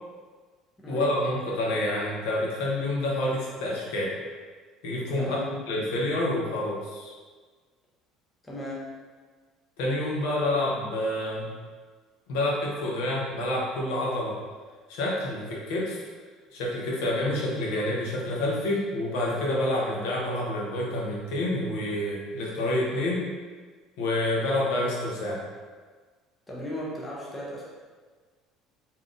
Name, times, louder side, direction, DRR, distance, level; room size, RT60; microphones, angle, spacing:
voice 1, 0.9-4.1 4.8-5.4 5.7-7.1 9.8-11.5 12.3-14.4 14.9-16.0 16.5-23.3 24.0-25.4, left 1 dB, 85° left, -4 dB, 0.8 m, -28 dB
voice 2, 5.1-5.5 8.4-8.9 26.5-27.7, equal, 10° left, -5 dB, 0.5 m, -36 dB
3.6 x 2.7 x 2.5 m, 1.5 s
cardioid pair, 180°, 0 cm